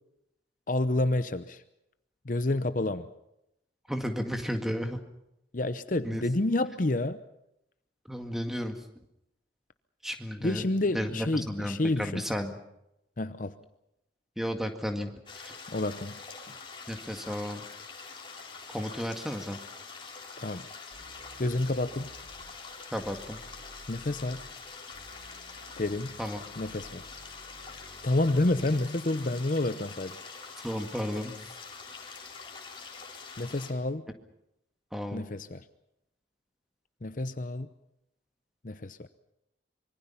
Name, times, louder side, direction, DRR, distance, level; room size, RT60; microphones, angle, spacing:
voice 1, 0.7-1.6 2.2-3.1 5.5-7.2 10.4-12.2 13.2-13.6 15.7-16.2 20.4-20.7 21.4-22.1 23.9-24.5 25.8-26.2 26.6-27.0 28.0-30.2 33.4-34.1 35.1-35.6 37.0-37.7 38.6-39.1, left 2 dB, 45° left, 11 dB, 0.8 m, -29 dB
voice 2, 3.9-5.0 6.0-6.2 8.1-8.8 10.0-10.6 10.9-12.6 14.4-15.5 16.9-17.6 18.7-19.6 22.9-23.4 26.2-26.4 30.6-31.5 34.9-35.2, equal, ahead, 5 dB, 2.0 m, -33 dB
sound 1, 15.3-33.7, left 5 dB, 25° left, 3.9 m, -45 dB
sound 2, 20.9-28.9, equal, 65° right, 5.6 m, -54 dB
25.5 x 23.5 x 5.7 m, 0.84 s
head